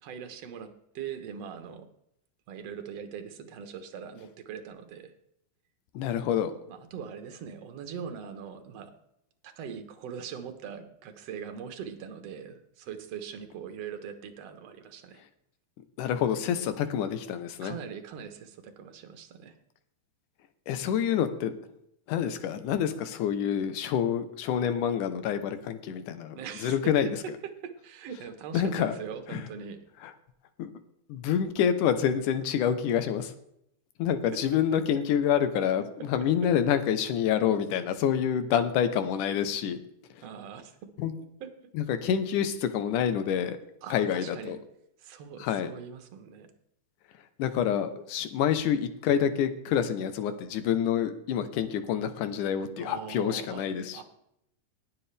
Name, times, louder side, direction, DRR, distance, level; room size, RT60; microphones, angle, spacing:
voice 1, 0.0-1.9 2.5-5.1 6.7-8.9 9.4-15.2 17.6-19.5 26.4-26.9 27.4-29.8 36.4-36.5 40.2-40.8 41.4-41.5 43.8-44.6 45.0-46.5 52.8-53.7 53.9-54.0, right 7 dB, 60° right, 7 dB, 2.1 m, -41 dB
voice 2, 5.9-6.5 16.0-17.7 20.7-21.5 22.1-27.1 28.5-28.9 29.3-29.4 30.6-30.7 31.1-33.3 34.0-39.8 41.0-41.1 41.7-43.6 43.9-44.6 45.4-45.7 47.4-54.0, left 9 dB, 80° left, 10 dB, 2.5 m, -27 dB
20.0 x 7.6 x 3.4 m, 0.77 s
omnidirectional pair, 3.6 m